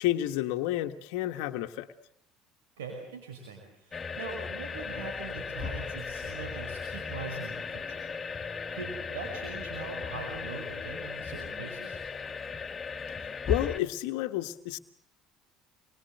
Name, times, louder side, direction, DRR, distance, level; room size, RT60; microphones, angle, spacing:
voice 1, 0.0-1.9 13.5-14.8, left 14 dB, 75° left, 7 dB, 1.4 m, -30 dB
voice 2, 2.8-12.0, right 4 dB, 85° right, 3 dB, 5.7 m, -42 dB
sound 1, 3.9-13.8, left 5 dB, 30° left, 2.1 m, -36 dB
29.0 x 23.0 x 7.9 m, 0.77 s
hypercardioid pair, 70°, 0 cm